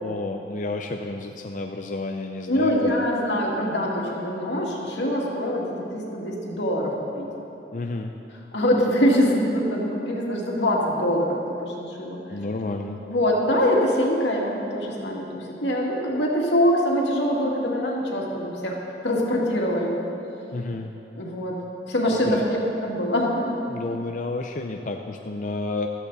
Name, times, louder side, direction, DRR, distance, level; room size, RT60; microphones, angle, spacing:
voice 1, 0.0-3.0 7.7-8.1 12.3-13.0 20.5-20.9 22.2-22.4 23.7-25.9, left 2 dB, 45° left, 3 dB, 0.5 m, -31 dB
voice 2, 2.5-7.3 8.5-12.2 13.0-18.8 19.0-19.9 21.1-21.6 21.9-23.5, equal, 85° left, -2 dB, 2.3 m, -24 dB
15.5 x 13.0 x 4.1 m, 2.9 s
head